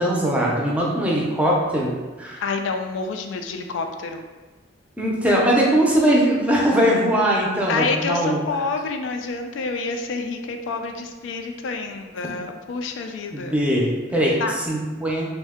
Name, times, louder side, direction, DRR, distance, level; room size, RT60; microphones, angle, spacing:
voice 1, 0.0-1.9 2.2-2.4 5.0-8.4 13.3-14.4 14.7-15.2, equal, 5° right, -4 dB, 0.4 m, -20 dB
voice 2, 2.4-4.3 7.7-13.6 14.4-14.5, left 4 dB, 90° left, 5 dB, 0.3 m, -28 dB
2.6 x 2.1 x 3.5 m, 1.3 s
head